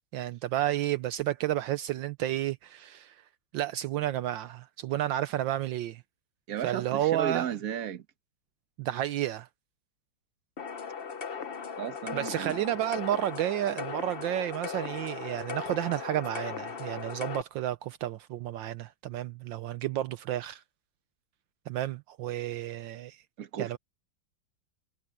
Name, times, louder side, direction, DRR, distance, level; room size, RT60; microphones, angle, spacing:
voice 1, 0.1-3.2 3.5-6.0 6.6-7.5 8.8-9.5 12.1-20.6 21.7-23.2 23.6-23.8, right 13 dB, 75° right, 1.4 m, -31 dB
voice 2, 6.5-8.0 11.8-12.6 23.4-23.8, right 9 dB, 50° right, 1.5 m, -34 dB
sound 1, 10.6-17.4, left 6 dB, 40° left, 0.9 m, -38 dB
omnidirectional pair, 2.1 m